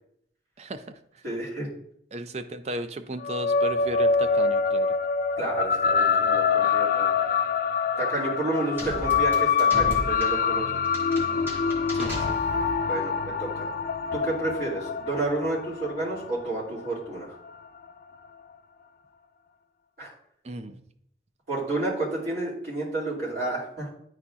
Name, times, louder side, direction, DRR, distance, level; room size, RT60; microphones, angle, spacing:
voice 1, 0.6-0.9 2.1-4.9 11.9-12.4 20.4-20.8, right 1 dB, 35° right, 10 dB, 0.4 m, -35 dB
voice 2, 1.2-1.7 5.4-7.1 8.0-10.7 12.8-13.7 14.1-17.3 20.0-20.1 21.5-23.9, right 2 dB, 65° right, -9 dB, 2.5 m, -30 dB
sound 1, 3.2-17.9, left 5 dB, 50° left, 0.3 m, -25 dB
sound 2, 8.8-12.9, equal, 15° right, 1.4 m, -36 dB
10.0 x 4.1 x 2.4 m, 0.70 s
head